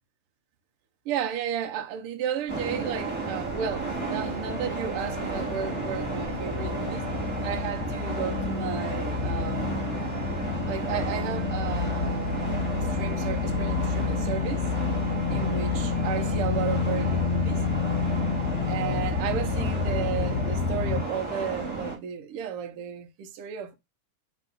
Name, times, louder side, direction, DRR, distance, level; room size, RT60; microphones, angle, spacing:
voice 1, 1.0-7.1 7.4-9.9 10.6-14.6 15.3-17.6 18.7-23.8, right 8 dB, 65° right, 1.5 m, -33 dB
sound 1, 2.5-22.0, right 3 dB, 10° left, 2.5 m, -33 dB
sound 2, 3.3-21.0, left 5 dB, 65° left, 2.1 m, -30 dB
4.5 x 4.2 x 5.3 m
omnidirectional pair, 3.5 m